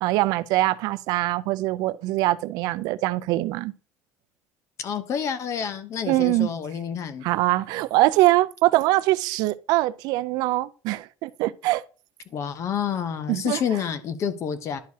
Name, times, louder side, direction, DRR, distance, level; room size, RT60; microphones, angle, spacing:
voice 1, 0.0-3.7 6.1-6.5 7.2-11.8 13.3-13.6, right 17 dB, 70° right, 0.4 m, -23 dB
voice 2, 4.8-7.3 12.3-14.8, left 8 dB, 45° left, 0.8 m, -28 dB
11.0 x 4.7 x 2.8 m
cardioid pair, 130°, 7 cm